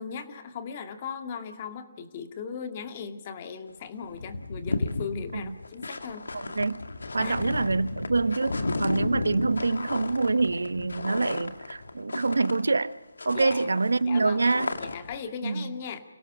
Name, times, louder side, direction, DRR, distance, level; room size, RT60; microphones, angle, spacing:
voice 1, 0.0-6.3 7.2-7.5 13.3-13.7 14.0-14.4 14.8-16.0, left 6 dB, 30° left, 2.2 m, -38 dB
sound 1, 3.7-3.8 4.0-12.9 13.2-15.2, left 3 dB, 80° left, 2.1 m, -34 dB
voice 2, 6.3-6.8 7.1-12.9 13.2-14.7 15.4-15.7, right 3 dB, 80° right, 0.9 m, -26 dB
29.5 x 17.5 x 5.0 m
figure-of-eight pair, 155°, 0 cm